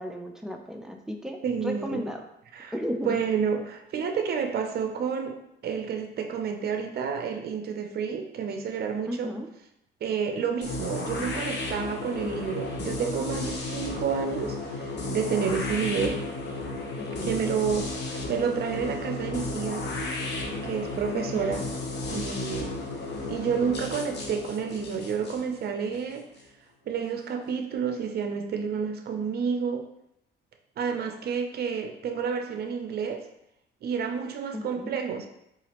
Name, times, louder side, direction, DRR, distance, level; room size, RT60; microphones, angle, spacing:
voice 1, 0.0-2.2 2.7-3.1 9.1-9.5 17.0-17.4 21.2-21.5 34.5-35.0, equal, 5° right, 3 dB, 0.4 m, -34 dB
voice 2, 1.4-2.0 2.5-2.7 3.0-5.4 5.6-9.3 10.0-16.2 17.2-18.0 18.3-19.9 20.6-21.6 22.1-22.7 23.3-26.2 26.9-29.9 30.8-33.2 33.8-35.3, right 6 dB, 55° right, 4 dB, 0.5 m, -29 dB
sound 1, 10.6-26.4, left 2 dB, 60° left, 0.8 m, -34 dB
4.0 x 2.5 x 2.9 m, 0.81 s
cardioid pair, 90°, 20 cm